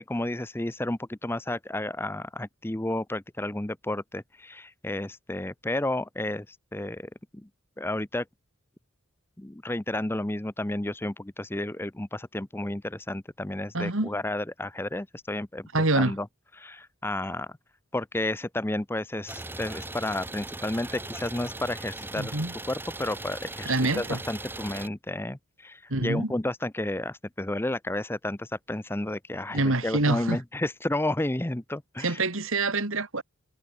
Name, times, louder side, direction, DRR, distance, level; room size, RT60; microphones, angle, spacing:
voice 1, 0.0-7.5 7.8-8.2 9.4-15.7 16.0-16.3 16.6-17.5 17.9-22.4 22.7-32.2, left 1 dB, 10° left, 0.6 m, -32 dB
voice 2, 13.7-14.1 15.7-16.2 22.1-22.5 23.7-24.2 25.9-26.3 29.5-30.4 32.0-33.2, right 2 dB, 65° right, 2.6 m, -26 dB
Idling, 19.3-24.9, right 2 dB, 10° right, 1.5 m, -39 dB
head